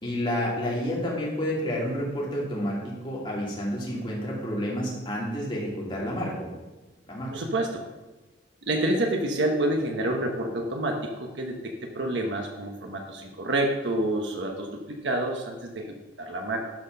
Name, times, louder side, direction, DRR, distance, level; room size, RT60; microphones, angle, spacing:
voice 1, 0.0-6.5 7.1-7.4, equal, 30° left, -5 dB, 2.8 m, -30 dB
voice 2, 7.3-7.8 8.6-16.7, right 1 dB, 85° right, 2 dB, 1.1 m, -28 dB
12.0 x 4.4 x 5.6 m, 1.1 s
head